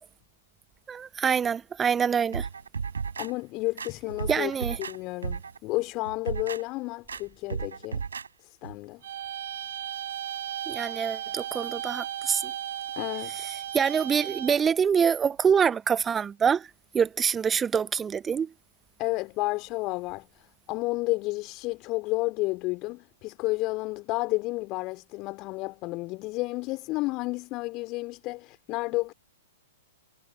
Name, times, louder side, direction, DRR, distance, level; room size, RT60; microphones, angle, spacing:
voice 1, 0.9-2.5 4.3-4.8 10.7-12.5 13.4-16.7 16.9-18.5, right 7 dB, 15° right, 0.5 m, -25 dB
sound 1, 2.3-3.3 3.8-5.0 5.2-5.6 6.0-6.6 7.1-7.2 7.5-8.3 8.6-8.7, right 6 dB, 70° right, 4.3 m, -34 dB
voice 2, 3.2-4.5 4.9-8.0 8.4-9.0 13.0-13.3 19.0-20.4 20.7-29.1, left 22 dB, 35° left, 4.3 m, -31 dB
sound 2, 9.0-14.8, right 11 dB, 55° right, 4.4 m, -35 dB
figure-of-eight pair, 105°, 0 cm